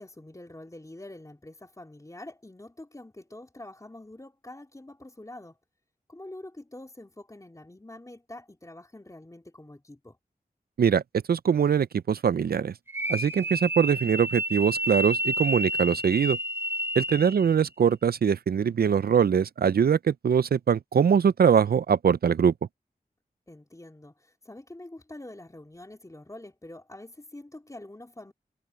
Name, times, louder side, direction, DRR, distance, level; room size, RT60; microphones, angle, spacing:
voice 1, 0.0-5.6 6.1-10.2 13.6-13.7 17.1-17.3 23.5-24.1 24.4-28.3, left 1 dB, 20° left, 3.2 m, -45 dB
voice 2, 11.3-12.7 13.1-16.4 17.0-22.5, right 7 dB, 75° right, 0.4 m, -22 dB
sound 1, 12.9-17.6, right 1 dB, 15° right, 2.8 m, -30 dB
wide cardioid pair, 75°, 16 cm